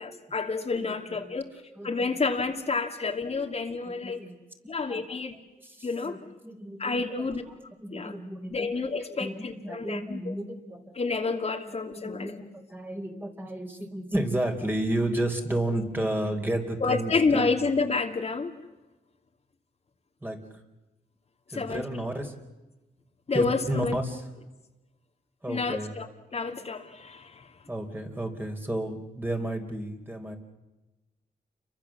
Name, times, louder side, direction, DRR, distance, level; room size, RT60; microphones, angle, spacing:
voice 1, 0.0-1.5 1.8-4.2 4.7-5.3 5.8-6.2 6.8-7.4 7.9-8.1 8.5-10.2 11.0-12.4 16.8-18.5 21.5-22.0 23.3-24.0 25.5-27.5, left 4 dB, 40° left, 2 dB, 2.6 m, -29 dB
voice 2, 0.8-1.4 1.8-2.1 3.0-3.4 3.8-4.4 4.9-5.0 5.6-6.2 6.4-7.2 7.8-8.7 9.1-10.9 11.6-17.6 20.2-20.6 21.5-22.3 23.3-24.3 25.4-25.9 27.7-30.4, right 1 dB, 10° right, 3 dB, 4.0 m, -32 dB
29.5 x 23.5 x 7.5 m, 1.1 s
cardioid pair, 95°, 16 cm